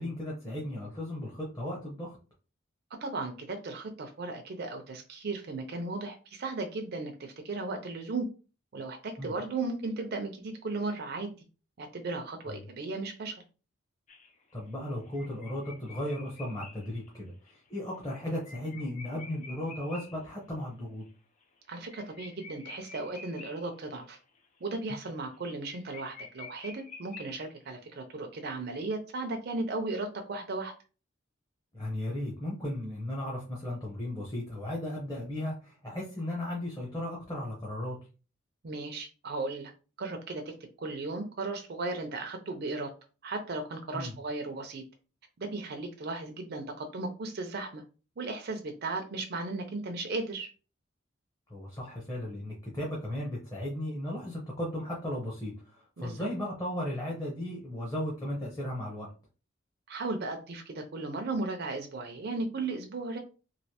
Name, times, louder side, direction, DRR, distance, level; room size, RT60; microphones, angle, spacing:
voice 1, 0.0-2.2 9.2-9.3 12.5-12.6 14.5-21.0 31.7-38.0 43.9-44.1 51.5-59.1, left 1 dB, 20° left, -4 dB, 0.8 m, -36 dB
voice 2, 3.0-8.3 8.7-11.3 11.8-13.4 21.7-24.2 24.6-30.7 38.6-39.7 40.0-42.9 43.2-44.8 45.4-47.8 48.2-50.5 56.0-56.2 59.9-63.2, right 3 dB, 50° right, 4 dB, 0.5 m, -36 dB
sound 1, 14.1-20.3 20.6-20.7 21.0-21.1 21.4-24.0 24.4-24.7 25.0-25.1 25.3-25.4 25.7-27.7, left 4 dB, 35° left, 0.5 m, -49 dB
3.1 x 2.5 x 2.8 m, 0.34 s
head